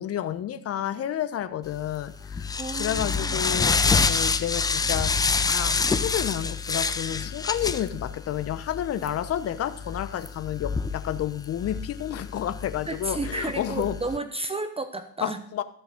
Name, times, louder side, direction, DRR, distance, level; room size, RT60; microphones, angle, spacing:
voice 1, 0.0-2.5 2.7-5.1 5.5-14.0 15.2-15.6, left 11 dB, 30° left, 13 dB, 1.0 m, -30 dB
sound 1, 1.8-14.2, left 4 dB, 10° left, 0.5 m, -28 dB
voice 2, 2.6-3.4 12.9-15.4, right 2 dB, 15° right, 9 dB, 0.8 m, -32 dB
14.0 x 6.8 x 6.4 m, 0.66 s
hypercardioid pair, 85°, 46 cm